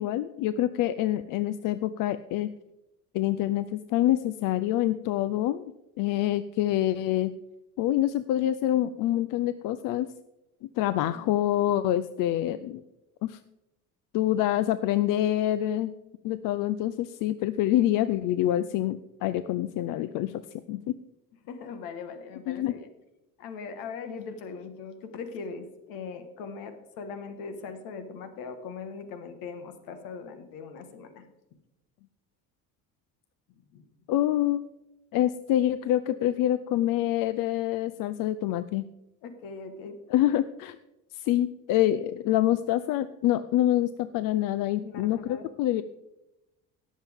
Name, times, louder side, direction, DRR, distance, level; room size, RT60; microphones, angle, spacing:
voice 1, 0.0-2.5 3.1-5.7 6.0-7.3 7.8-10.1 10.8-12.8 13.2-13.4 14.1-15.9 16.2-20.4 20.7-20.8 22.5-22.7 34.1-34.6 35.1-38.9 40.1-40.8 41.1-45.8, left 13 dB, 70° left, 14 dB, 0.5 m, -26 dB
voice 2, 21.4-22.9 23.4-31.2 33.7-33.8 39.2-40.0 40.2-40.3 44.8-45.4, left 5 dB, 85° left, 9 dB, 1.5 m, -40 dB
18.0 x 7.3 x 3.6 m, 0.93 s
cardioid pair, 125°, 34 cm